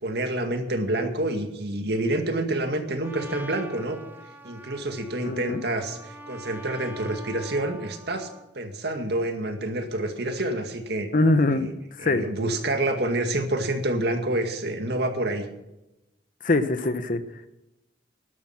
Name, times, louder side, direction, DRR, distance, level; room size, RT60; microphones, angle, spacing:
voice 1, 0.0-4.0 4.4-8.3 8.5-11.1 11.5-11.7 12.0-15.5, right 1 dB, 65° right, 5 dB, 2.1 m, -28 dB
Trumpet, 3.0-8.5, equal, 10° right, 1.5 m, -44 dB
voice 2, 5.2-5.6 11.1-11.7 12.0-12.2 16.4-17.2, left 2 dB, 50° left, 11 dB, 1.1 m, -22 dB
12.5 x 12.5 x 6.0 m, 0.93 s
head